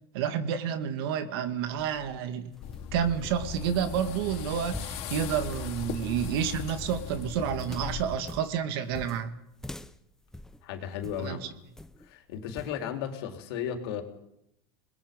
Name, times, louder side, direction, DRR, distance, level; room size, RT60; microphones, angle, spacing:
voice 1, 0.1-2.5 2.9-9.4 11.2-11.5, right 8 dB, 70° right, 2.5 m, -30 dB
sound 1, 1.6-11.3 11.8-12.1 12.6-12.8, left 1 dB, 5° left, 1.0 m, -46 dB
sound 2, 2.6-8.2, left 8 dB, 50° left, 4.0 m, -38 dB
voice 2, 10.6-11.6 12.0-14.0, left 8 dB, 75° left, 4.3 m, -35 dB
29.5 x 21.5 x 5.6 m
supercardioid pair, 140°, 13 cm